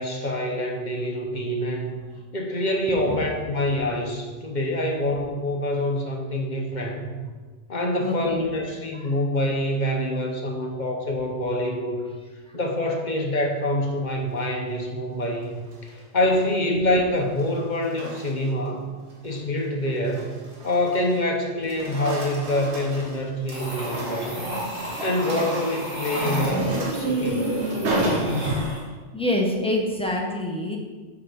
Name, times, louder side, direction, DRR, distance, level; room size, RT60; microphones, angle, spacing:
voice 1, 0.0-2.0 2.3-7.1 7.7-12.2 12.5-18.9 19.2-24.4 25.0-27.5, left 1 dB, 45° left, 2 dB, 0.9 m, -26 dB
voice 2, 8.0-8.5 8.9-9.1 12.5-12.6 15.9-16.0 18.9-19.0 29.1-30.8, left 1 dB, 5° left, -1 dB, 0.8 m, -27 dB
sound 1, 15.5-16.0 17.1-18.7 19.1-19.4 19.9-21.3 21.6-28.9, right 2 dB, 70° right, 1.4 m, -34 dB
sound 2, 23.5-28.8, right 1 dB, 50° right, 2.1 m, -28 dB
6.9 x 4.6 x 5.2 m, 1.4 s
omnidirectional pair, 1.2 m